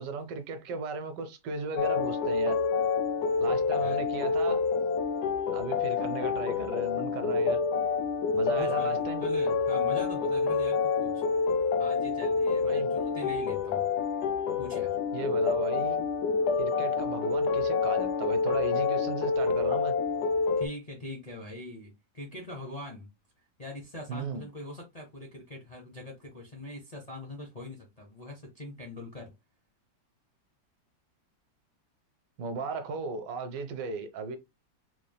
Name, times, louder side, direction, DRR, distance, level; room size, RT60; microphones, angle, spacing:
voice 1, 0.0-2.6 3.4-4.7 5.5-7.6 8.3-9.2 12.6-12.9 15.1-16.0 16.6-20.0 24.1-24.4 32.4-34.4, right 4 dB, 75° right, 1.3 m, -36 dB
sound 1, 1.8-20.7, left 5 dB, 70° left, 1.1 m, -28 dB
voice 2, 8.6-11.2 11.8-13.9 14.6-15.0 20.6-23.1 23.6-29.3, left 1 dB, 35° left, 0.7 m, -42 dB
4.1 x 3.3 x 2.2 m
omnidirectional pair, 2.0 m